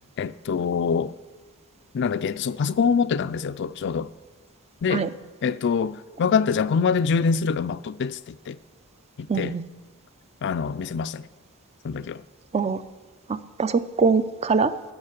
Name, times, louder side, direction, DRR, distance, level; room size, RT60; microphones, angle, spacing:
voice 1, 0.2-1.1 1.9-4.1 4.8-5.1 5.4-8.6 9.2-9.6 10.4-11.3 11.8-12.2, left 6 dB, 55° left, 0.4 m, -25 dB
voice 2, 9.3-9.6 12.5-12.8 13.3-14.7, right 4 dB, 30° right, 0.5 m, -23 dB
13.0 x 8.1 x 6.6 m
head